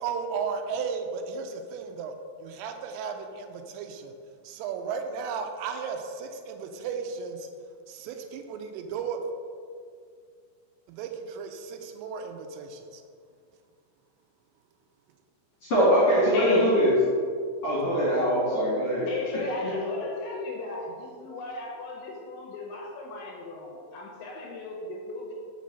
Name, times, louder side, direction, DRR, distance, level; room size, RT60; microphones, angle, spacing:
voice 1, 0.0-2.1 2.4-4.1 4.4-7.5 7.9-9.2 10.9-13.0, right 6 dB, 85° right, 5 dB, 3.2 m, -34 dB
voice 2, 15.6-17.0 17.6-19.7, equal, 45° left, -10 dB, 2.1 m, -23 dB
voice 3, 16.3-16.9 19.1-25.3, left 3 dB, 80° left, 0 dB, 2.8 m, -34 dB
6.7 x 5.4 x 6.4 m, 2.2 s
omnidirectional pair, 5.9 m